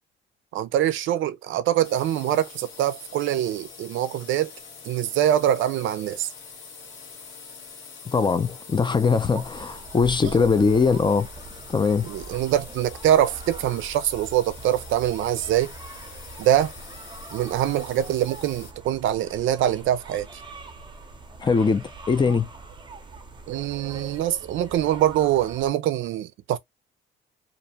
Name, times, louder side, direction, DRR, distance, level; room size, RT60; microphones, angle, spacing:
voice 1, 0.5-4.5 4.9-6.3 10.3-10.5 12.0-15.7 16.4-16.7 17.3-20.3 23.5-26.6, right 12 dB, 75° right, 0.4 m, -24 dB
sound 1, 1.8-18.7, left 5 dB, 80° left, 1.1 m, -45 dB
voice 2, 8.1-11.3 11.7-12.1 21.4-22.5, left 5 dB, 25° left, 0.4 m, -21 dB
sound 2, 9.1-25.7, right 3 dB, 25° right, 0.6 m, -43 dB
sound 3, 10.0-14.8, equal, 60° left, 1.0 m, -45 dB
2.5 x 2.1 x 2.7 m
cardioid pair, 90°, 20 cm